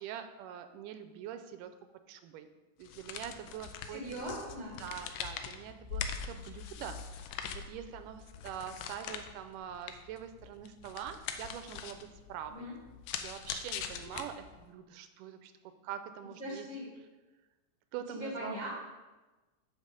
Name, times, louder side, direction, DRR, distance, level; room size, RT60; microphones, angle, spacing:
voice 1, 0.0-1.7 2.1-2.5 2.8-4.2 4.8-12.7 13.2-15.5 15.8-16.7 17.9-18.6, right 9 dB, 85° right, 9 dB, 2.1 m, -44 dB
sound 1, 2.8-14.7, left 7 dB, 90° left, 2.3 m, -43 dB
voice 2, 3.9-4.8 12.5-12.7 14.0-14.1 16.4-16.9 18.1-18.7, equal, 15° left, -3 dB, 0.9 m, -40 dB
8.3 x 6.6 x 5.1 m, 1.2 s
omnidirectional pair, 3.7 m